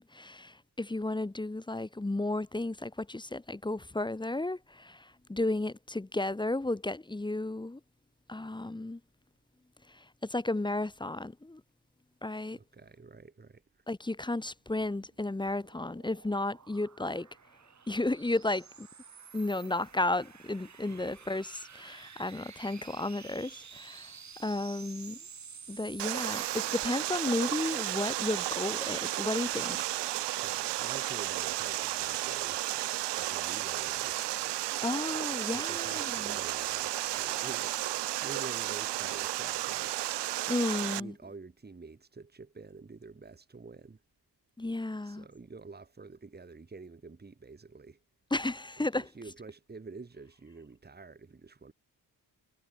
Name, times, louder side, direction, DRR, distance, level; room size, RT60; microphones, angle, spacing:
voice 1, 0.0-7.8 8.3-9.0 9.8-11.6 12.2-12.6 13.9-17.3 17.9-18.9 19.3-25.2 25.7-29.9 34.8-36.4 40.5-41.2 44.6-45.3 48.3-49.1, left 2 dB, 10° left, 1.1 m, -33 dB
voice 2, 12.6-13.8 20.9-21.1 30.4-32.6 33.1-34.5 35.5-37.8 38.2-40.0 40.9-44.0 45.0-48.0 48.8-51.7, right 4 dB, 25° right, 2.6 m, -48 dB
sound 1, 15.1-27.5, right 6 dB, 45° right, 3.3 m, -51 dB
Water, 26.0-41.0, right 16 dB, 90° right, 0.7 m, -33 dB
cardioid pair, 110°, 40 cm